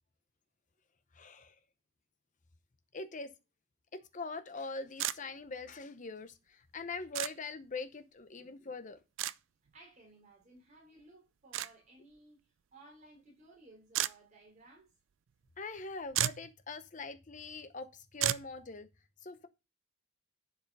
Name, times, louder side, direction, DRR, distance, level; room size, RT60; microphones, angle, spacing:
voice 1, 1.1-1.6 2.9-3.3 3.9-9.0 15.6-18.9 19.2-19.5, left 3 dB, 40° left, 0.8 m, -42 dB
sound 1, 5.0-5.2 7.1-7.3 9.2-9.4 11.5-11.7 13.9-14.1 15.8-15.9 16.1-16.5 18.2-18.5, right 13 dB, 70° right, 0.4 m, -32 dB
voice 2, 9.7-14.9, right 2 dB, 35° right, 3.5 m, -58 dB
10.5 x 5.0 x 5.3 m
head